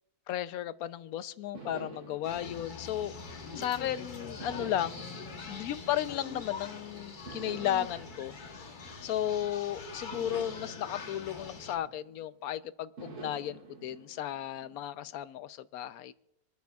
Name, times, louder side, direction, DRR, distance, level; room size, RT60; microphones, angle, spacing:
voice 1, 0.3-3.2 3.6-5.2 5.5-8.3 9.0-16.1, left 11 dB, 75° left, 14 dB, 1.0 m, -34 dB
sound 1, 1.5-3.8 4.4-6.7 7.3-9.5 10.1-12.4 13.0-15.2, right 4 dB, 85° right, 2.9 m, -49 dB
sound 2, 2.2-11.8, left 4 dB, 35° left, 1.0 m, -44 dB
27.0 x 9.3 x 2.3 m, 0.89 s
omnidirectional pair, 1.6 m